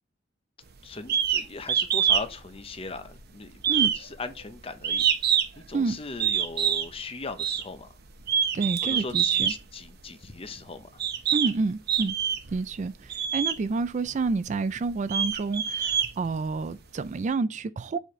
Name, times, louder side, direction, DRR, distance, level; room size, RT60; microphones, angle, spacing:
voice 1, 0.8-3.5 4.0-5.0 5.6-7.9 8.8-10.9, left 3 dB, 30° left, 0.8 m, -38 dB
sound 1, 1.1-1.4 1.7-2.3 2.6-3.2 3.6-5.6 6.2-6.9 7.4-7.6 8.2-9.6 10.4-10.5 11.0-11.5 11.9-12.6 13.1-13.6 14.2-14.3 14.8-16.6, right 8 dB, 55° right, 0.8 m, -25 dB
voice 2, 8.5-9.5 11.3-12.1 12.5-18.0, right 4 dB, 40° right, 0.3 m, -29 dB
7.2 x 4.3 x 3.1 m
head